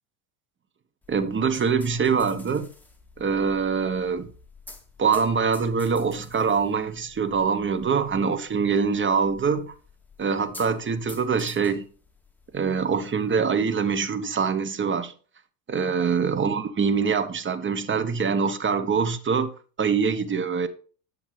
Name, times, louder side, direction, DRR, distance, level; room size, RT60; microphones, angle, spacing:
sound 1, 1.0-13.4, left 3 dB, 5° left, 2.0 m, -50 dB
voice 1, 1.1-2.7 3.2-4.3 5.0-9.7 10.2-11.9 12.5-15.1 15.7-19.5 19.8-20.7, right 6 dB, 25° right, 1.1 m, -24 dB
10.5 x 7.9 x 3.4 m
hypercardioid pair, 90°, 45 cm